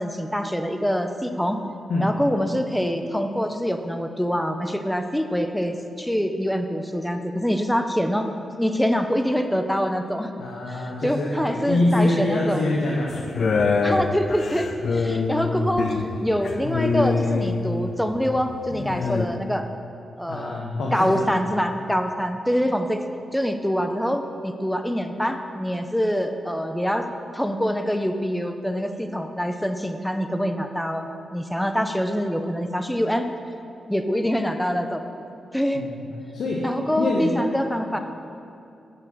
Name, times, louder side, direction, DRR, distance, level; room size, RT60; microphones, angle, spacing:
voice 1, 0.0-1.6 2.0-10.3 10.7-12.7 13.8-15.9 16.2-19.7 20.2-20.6 20.9-23.0 23.3-27.1 27.3-31.0 31.3-33.2 33.9-35.0 35.5-35.8 36.6-38.0, equal, 5° left, 7 dB, 0.5 m, -25 dB
voice 2, 10.4-13.2 20.3-21.3 35.7-36.7 37.0-37.4 37.9-38.0, left 2 dB, 80° left, -3 dB, 1.0 m, -25 dB
sound 1, 13.1-18.0 18.7-19.3, left 4 dB, 50° left, 0.5 m, -25 dB
6.7 x 6.1 x 7.4 m, 2.6 s
wide cardioid pair, 140°, 0 cm